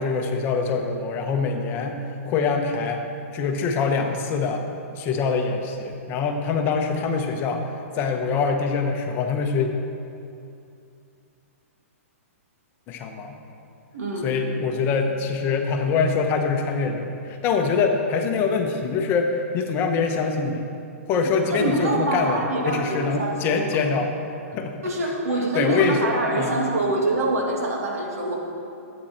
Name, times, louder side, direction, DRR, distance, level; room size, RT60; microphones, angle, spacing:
voice 1, 0.0-2.0 2.3-3.0 3.3-4.6 5.0-7.6 7.9-9.7 12.9-13.3 14.2-20.7 21.1-24.1 24.5-24.7 25.5-26.6, left 5 dB, 25° left, 4 dB, 0.9 m, -24 dB
voice 2, 13.9-14.3 21.5-23.7 24.8-28.3, right 2 dB, 80° right, -1 dB, 2.3 m, -25 dB
13.0 x 8.9 x 4.3 m, 2.6 s
hypercardioid pair, 145°, 8 cm